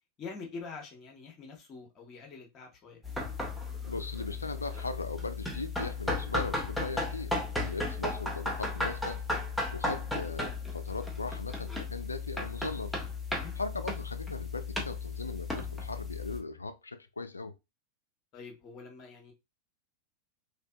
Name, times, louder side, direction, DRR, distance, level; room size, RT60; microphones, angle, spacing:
voice 1, 0.2-3.0 13.3-13.6 18.3-19.3, left 4 dB, 30° left, 0.8 m, -45 dB
sound 1, 3.0-16.4, left 2 dB, ahead, 0.6 m, -35 dB
voice 2, 3.9-9.2 9.7-13.0 13.6-17.5, left 3 dB, 80° left, 0.3 m, -39 dB
2.5 x 2.5 x 2.3 m
figure-of-eight pair, 90°, 0 cm